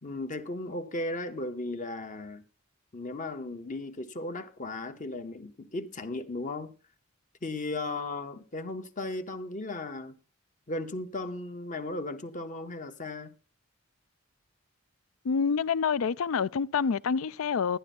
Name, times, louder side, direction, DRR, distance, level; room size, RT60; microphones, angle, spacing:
voice 1, 0.0-2.4 2.9-6.7 7.4-10.2 10.7-13.3, left 2 dB, 40° left, 0.9 m, -36 dB
voice 2, 15.2-17.8, left 6 dB, 80° left, 0.4 m, -27 dB
11.5 x 10.0 x 4.2 m
head